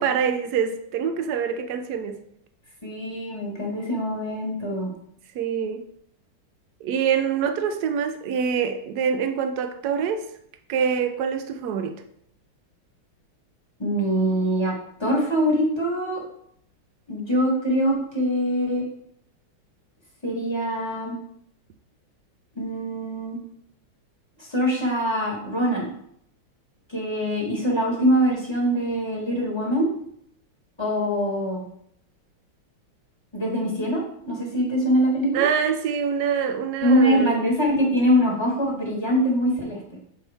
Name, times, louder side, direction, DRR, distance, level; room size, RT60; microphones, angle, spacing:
voice 1, 0.0-2.2 5.3-5.9 6.8-10.3 10.7-12.0 35.3-37.4, right 7 dB, 75° right, 0.9 m, -25 dB
voice 2, 2.8-4.9 13.8-14.7 15.0-16.2 17.1-18.8 20.2-21.2 22.6-23.4 24.4-25.9 26.9-29.9 30.8-31.6 33.3-35.5 36.8-39.8, equal, 15° left, 1.2 m, -23 dB
6.7 x 4.5 x 3.4 m
omnidirectional pair, 2.3 m